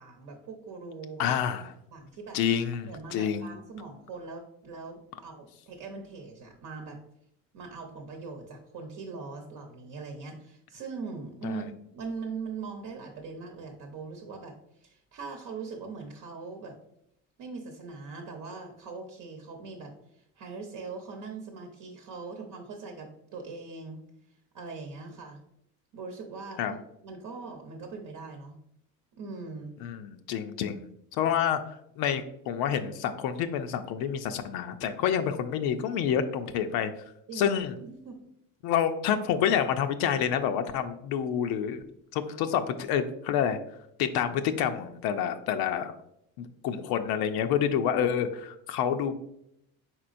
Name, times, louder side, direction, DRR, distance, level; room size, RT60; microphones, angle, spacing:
voice 1, 0.0-1.2 1.9-2.4 2.8-7.0 7.5-11.7 11.9-16.8 17.4-24.0 24.5-25.4 25.9-28.5 29.1-29.8 37.3-38.2, right 4 dB, 60° right, 2 dB, 0.9 m, -41 dB
voice 2, 1.2-1.7 2.3-3.5 11.4-11.6 26.6-26.7 29.8-36.9 37.3-37.7 38.6-41.8 42.1-43.6 44.0-45.9 46.4-49.2, left 8 dB, 75° left, 8 dB, 0.5 m, -28 dB
4.4 x 4.0 x 2.5 m, 0.77 s
supercardioid pair, 95°, 37 cm